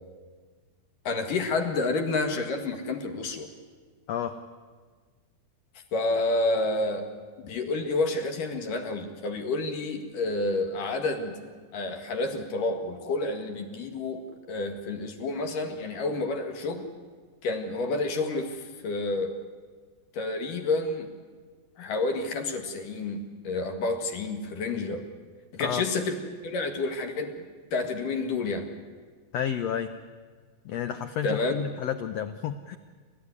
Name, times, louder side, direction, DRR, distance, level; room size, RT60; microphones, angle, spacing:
voice 1, 1.0-3.5 5.9-7.1 7.4-11.4 11.7-16.9 17.4-19.4 20.1-21.1 21.8-25.0 25.5-26.2 26.4-27.3 27.7-28.7 31.2-31.6, left 3 dB, 70° left, 5 dB, 3.4 m, -29 dB
voice 2, 29.3-29.9 30.6-32.8, left 9 dB, 90° left, 9 dB, 1.4 m, -31 dB
29.5 x 12.5 x 9.7 m, 1.5 s
omnidirectional pair, 4.1 m